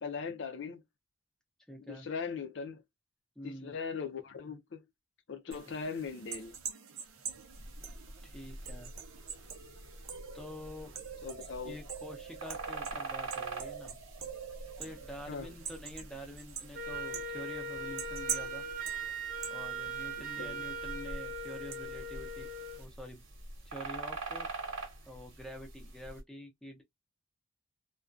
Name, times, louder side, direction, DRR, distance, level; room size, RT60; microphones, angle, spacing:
voice 1, 0.0-0.8 1.9-2.8 3.4-4.8 5.3-6.6 11.2-11.8 15.3-15.5 20.2-20.6, left 5 dB, 60° left, 0.5 m, -39 dB
voice 2, 1.7-2.1 3.4-3.7 8.2-8.9 10.3-10.9 11.4-13.9 14.8-18.6 19.5-22.5 22.8-23.2 23.6-24.5 25.1-26.8, equal, 5° left, 0.6 m, -47 dB
sound 1, 5.5-22.8, right 7 dB, 90° right, 0.6 m, -45 dB
sound 2, 7.5-26.2, right 3 dB, 70° right, 1.0 m, -46 dB
Wind instrument woodwind instrument, 16.7-22.8, right 2 dB, 40° right, 0.5 m, -39 dB
2.3 x 2.1 x 2.5 m
head